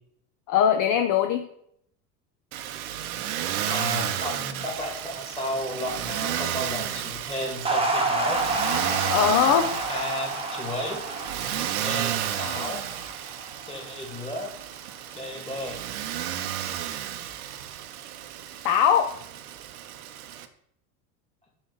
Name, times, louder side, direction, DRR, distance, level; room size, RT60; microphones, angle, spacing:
voice 1, 0.5-1.5 9.1-9.7 18.6-19.1, left 8 dB, 45° left, 5 dB, 0.7 m, -21 dB
Motor vehicle (road), 2.5-20.5, right 11 dB, 70° right, 0.8 m, -32 dB
voice 2, 3.7-8.4 9.9-11.0 11.8-12.8 13.7-14.5 15.1-15.8, left 1 dB, 15° left, 0 dB, 2.2 m, -33 dB
sound 1, 7.6-14.1, right 2 dB, 10° right, 1.1 m, -29 dB
7.3 x 3.2 x 4.7 m, 0.71 s
hypercardioid pair, 80°, 46 cm